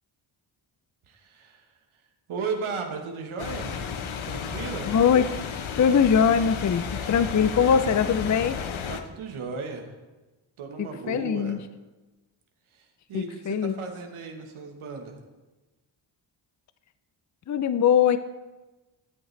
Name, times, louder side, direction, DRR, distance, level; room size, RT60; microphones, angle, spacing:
voice 1, 1.1-1.6 2.3-3.8 4.2-4.9 8.9-10.0 10.6-11.6 12.7-15.2, right 4 dB, 85° right, 3 dB, 1.3 m, -35 dB
sound 1, 3.4-9.0, left 6 dB, 75° left, 0.9 m, -33 dB
voice 2, 4.8-5.3 5.8-8.6 10.8-11.6 13.1-13.7 17.5-18.2, left 7 dB, 40° left, 12 dB, 0.5 m, -22 dB
13.0 x 7.9 x 3.2 m, 1.2 s
cardioid pair, 45°, 48 cm